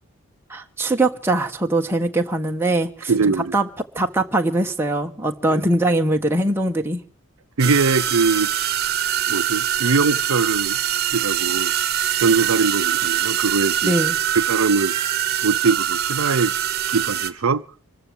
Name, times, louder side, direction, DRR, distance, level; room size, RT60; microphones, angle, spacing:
voice 1, 0.5-3.7 3.9-7.0 13.8-14.2, right 2 dB, 10° right, 1.3 m, -22 dB
voice 2, 3.1-3.5 5.5-5.6 7.6-8.5 9.3-10.8 11.1-11.7 12.2-13.9 14.3-14.9 15.4-16.5 16.9-17.6, right 4 dB, 75° right, 0.6 m, -21 dB
sound 1, 7.6-17.3, right 11 dB, 45° right, 1.3 m, -23 dB
26.0 x 13.5 x 3.4 m
head